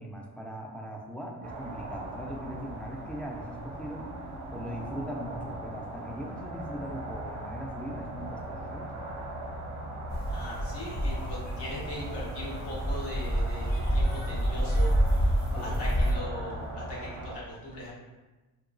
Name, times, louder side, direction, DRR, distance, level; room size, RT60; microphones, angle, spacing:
voice 1, 0.0-4.1 4.5-8.9 15.6-15.8, equal, 5° left, -1 dB, 0.4 m, -40 dB
sound 1, 1.4-17.4, right 1 dB, 45° right, 0.6 m, -39 dB
sound 2, 10.1-16.1, equal, 45° left, 0.8 m, -28 dB
voice 2, 10.3-14.9 15.5-17.1 17.5-17.9, left 1 dB, 80° left, -6 dB, 1.2 m, -40 dB
2.9 x 2.2 x 2.5 m, 1.1 s
cardioid pair, 75°, 40 cm